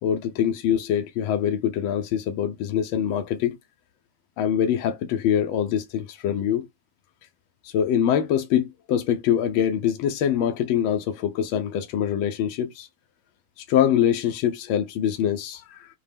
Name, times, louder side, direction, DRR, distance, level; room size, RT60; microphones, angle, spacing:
voice 1, 0.0-3.6 4.4-6.7 7.6-12.9 13.7-15.9, left 9 dB, 90° left, 1.4 m, -24 dB
5.2 x 2.2 x 3.4 m
omnidirectional pair, 2.1 m